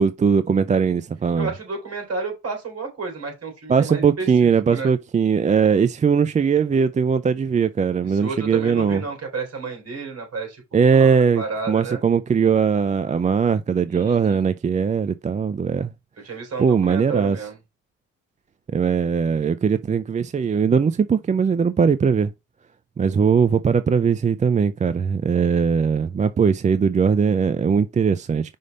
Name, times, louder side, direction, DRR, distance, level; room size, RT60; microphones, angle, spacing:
voice 1, 0.0-1.5 3.7-9.0 10.7-15.9 16.6-17.4 18.7-22.3 23.0-28.6, right 6 dB, 25° right, 0.4 m, -20 dB
voice 2, 1.4-4.9 8.0-12.0 13.9-14.5 16.2-17.6, right 4 dB, 55° right, 3.5 m, -31 dB
5.5 x 3.4 x 5.2 m
cardioid pair, 90°, 30 cm